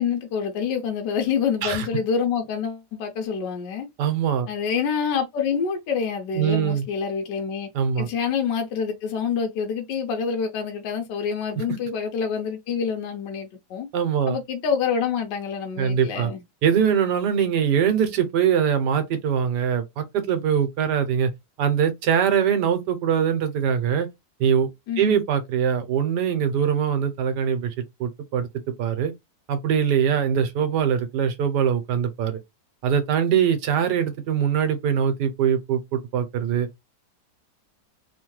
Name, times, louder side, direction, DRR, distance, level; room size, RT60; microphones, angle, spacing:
voice 1, 0.0-3.9 4.5-7.7 8.0-13.9 14.3-16.4 24.9-25.2, left 6 dB, 80° left, 1.3 m, -27 dB
voice 2, 4.0-4.5 6.3-6.9 7.7-8.1 13.9-14.4 15.8-16.3 16.6-21.3 21.6-24.1 24.4-24.7 25.0-27.7 28.0-28.5 28.8-29.1 29.5-32.4 32.8-36.7, right 8 dB, 75° right, 1.3 m, -22 dB
3.5 x 2.1 x 3.1 m
omnidirectional pair, 1.9 m